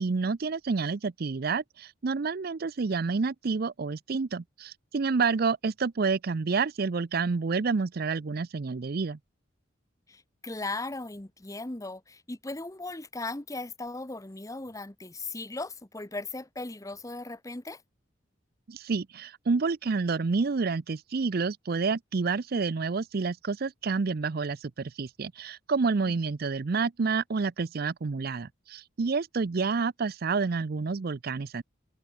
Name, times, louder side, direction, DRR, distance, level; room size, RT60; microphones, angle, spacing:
voice 1, 0.0-9.2 18.7-31.6, right 4 dB, 50° right, 0.5 m, -29 dB
voice 2, 10.1-17.8 26.0-26.1, left 2 dB, 15° left, 1.0 m, -37 dB
head